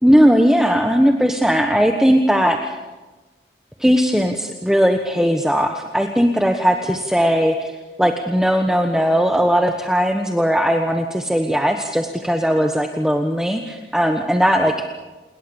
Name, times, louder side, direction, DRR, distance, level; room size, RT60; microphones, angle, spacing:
voice 1, 0.0-2.7 3.8-14.7, equal, 5° right, 4 dB, 1.3 m, -18 dB
29.0 x 21.5 x 7.1 m, 1.2 s
head